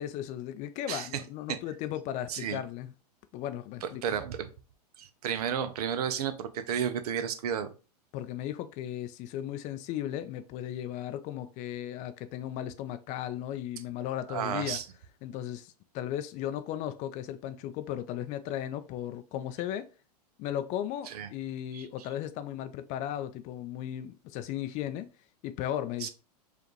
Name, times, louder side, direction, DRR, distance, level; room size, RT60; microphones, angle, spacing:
voice 1, 0.0-2.9 3.3-4.0 8.1-14.8 15.2-19.9 20.4-25.1 25.4-26.1, left 11 dB, 35° left, 0.4 m, -36 dB
voice 2, 0.9-1.2 1.5-1.6 2.3-2.6 3.8-4.5 5.0-7.7 14.3-14.8 21.1-21.3 21.7-21.9 26.0-26.1, right 8 dB, 65° right, 0.7 m, -32 dB
4.9 x 2.5 x 3.1 m
hypercardioid pair, 105°, 21 cm